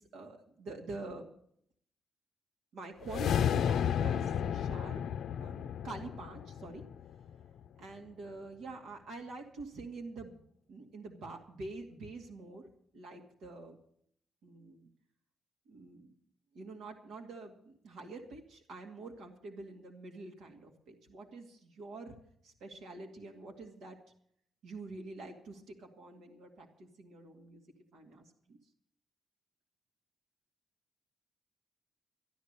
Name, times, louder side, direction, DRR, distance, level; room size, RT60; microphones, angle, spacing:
voice 1, 0.1-1.3 2.7-5.0 5.4-6.8 7.8-10.4 10.7-12.7 12.9-13.8 14.4-14.9 15.7-16.1 16.5-22.2 22.4-24.0 24.6-27.6 27.9-28.6, right 3 dB, 85° right, 1 dB, 2.2 m, -46 dB
sound 1, 3.0-7.4, left 9 dB, 65° left, 0.5 m, -32 dB
13.0 x 11.5 x 6.6 m, 0.67 s
cardioid pair, 160°, 0 cm